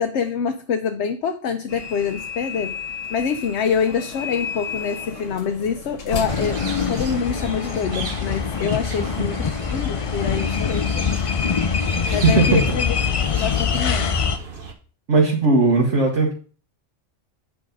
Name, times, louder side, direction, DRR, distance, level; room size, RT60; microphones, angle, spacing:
voice 1, 0.0-2.8 3.1-11.1 12.1-13.0 13.2-14.2, left 6 dB, 65° left, 6 dB, 0.9 m, -26 dB
sound 1, 1.7-7.5, left 5 dB, 85° left, 1.7 m, -33 dB
sound 2, 6.3-14.4, left 6 dB, 45° left, 0.4 m, -24 dB
sound 3, 6.3-14.7, right 4 dB, 45° right, 1.3 m, -36 dB
voice 2, 12.0-12.8 13.3-13.4 15.1-16.3, right 3 dB, 70° right, -2 dB, 1.8 m, -18 dB
8.8 x 4.9 x 5.1 m, 0.39 s
omnidirectional pair, 1.3 m